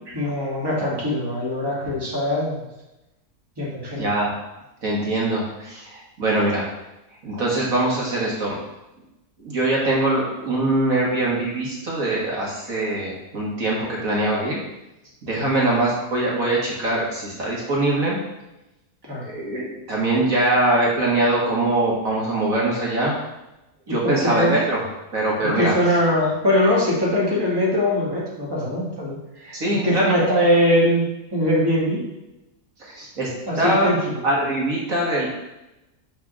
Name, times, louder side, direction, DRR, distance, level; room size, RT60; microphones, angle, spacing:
voice 1, 0.1-2.6 3.6-4.1 15.4-15.5 19.1-19.2 23.9-24.5 25.4-29.2 29.4-29.6 29.8-31.0 31.3-32.0 33.5-34.0, left 1 dB, 15° right, -5 dB, 1.9 m, -21 dB
voice 2, 4.0-4.3 4.8-6.7 7.2-8.6 9.4-14.6 15.2-18.2 19.2-23.2 23.9-24.8 25.1-25.7 29.5-30.2 32.8-33.3 33.6-33.9 34.2-35.3, right 2 dB, 60° right, -4 dB, 2.0 m, -22 dB
6.1 x 4.2 x 6.2 m, 0.95 s
omnidirectional pair, 1.6 m